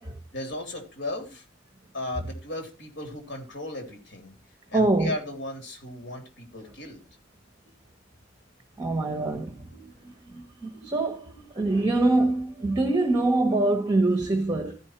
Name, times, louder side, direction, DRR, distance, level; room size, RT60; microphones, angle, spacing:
voice 1, 0.3-1.4 1.9-4.3 4.7-7.0, left 1 dB, 65° left, 3.4 m, -36 dB
voice 2, 4.7-5.1 8.8-14.8, right 2 dB, 20° right, 1.2 m, -25 dB
15.0 x 5.4 x 4.5 m
head